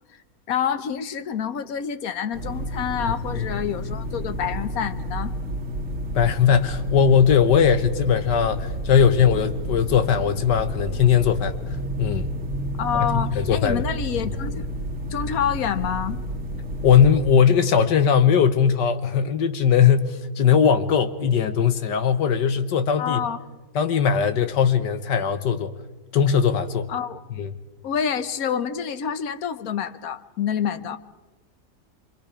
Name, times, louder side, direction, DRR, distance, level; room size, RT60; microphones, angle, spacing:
voice 1, 0.5-5.3 12.8-14.7 15.1-16.2 23.0-23.4 26.9-27.2 27.8-31.0, left 8 dB, 60° left, 1.3 m, -27 dB
sound 1, 2.3-17.4, equal, 45° right, 2.1 m, -30 dB
voice 2, 3.0-3.4 6.1-12.3 13.0-13.1 13.4-13.8 16.8-23.2 23.7-25.7 26.1-26.9 27.4-27.5, left 7 dB, 80° left, 1.6 m, -19 dB
27.5 x 25.0 x 5.0 m
omnidirectional pair, 1.9 m